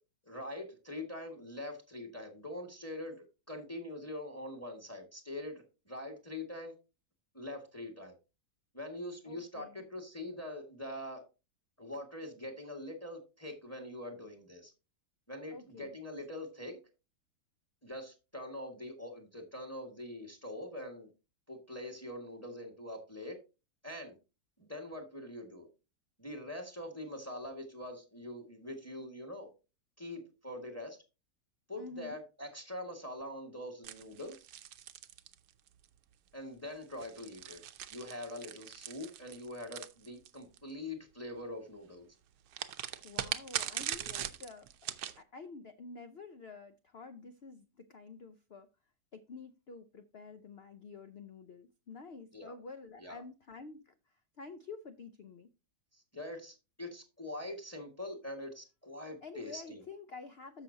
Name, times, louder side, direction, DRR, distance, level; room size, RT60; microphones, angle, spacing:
voice 1, 0.2-6.7 7.3-8.1 8.7-11.2 11.8-14.7 15.3-16.8 17.8-21.1 21.5-23.4 23.8-24.2 24.6-25.7 26.2-29.5 30.0-31.0 31.7-34.3 36.3-37.6 37.9-42.0 52.3-52.5 53.0-53.2 55.9-59.8, left 1 dB, 10° left, 5 dB, 1.6 m, -43 dB
voice 2, 9.3-9.8 15.5-16.0 31.8-32.2 43.0-44.7 45.2-48.7 49.1-55.5 59.2-60.6, left 4 dB, 65° left, 8 dB, 0.6 m, -49 dB
sound 1, 33.8-35.8 36.8-40.6 42.5-45.2, right 11 dB, 70° right, 1.2 m, -41 dB
14.0 x 5.9 x 2.7 m, 0.28 s
omnidirectional pair, 1.8 m